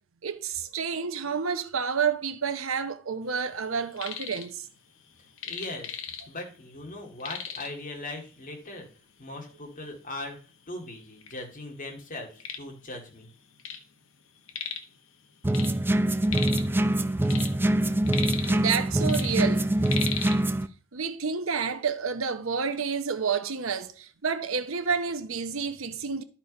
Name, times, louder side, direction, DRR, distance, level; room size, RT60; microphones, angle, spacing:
voice 1, 0.2-4.7 18.4-19.7 20.9-26.2, right 6 dB, 80° right, 0.9 m, -29 dB
sound 1, 3.7-4.5 4.8-6.5 6.8-6.9 7.2-7.9 8.6-8.7 9.3-9.4 10.1-10.2 10.5-11.3 11.8-13.9 14.1-15.0 15.2-16.8 17.1-18.8 19.0-20.4, left 7 dB, 75° left, 1.1 m, -36 dB
voice 2, 5.4-6.0 6.3-8.9 9.2-10.4 10.7-13.3, left 2 dB, 40° left, 2.3 m, -39 dB
sound 2, 15.4-20.7, right 1 dB, 10° right, 0.4 m, -24 dB
12.0 x 4.3 x 5.3 m
head